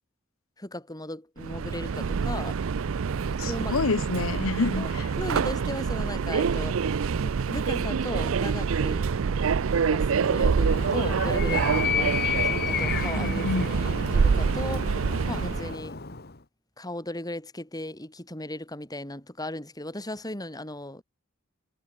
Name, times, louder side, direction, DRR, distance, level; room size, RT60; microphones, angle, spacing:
voice 1, 0.6-2.6 3.3-3.7 4.8-4.9 5.2-6.8 7.2-9.1 9.9-14.9 15.3-16.0 16.8-21.0, left 1 dB, 20° left, 6.7 m, -36 dB
Subway metro underground, 1.4-15.7, right 5 dB, 80° right, 0.5 m, -26 dB
voice 2, 3.4-5.1 13.1-13.7, left 4 dB, 80° left, 0.8 m, -28 dB
Animal, 10.5-16.4, left 7 dB, 50° left, 1.9 m, -32 dB
head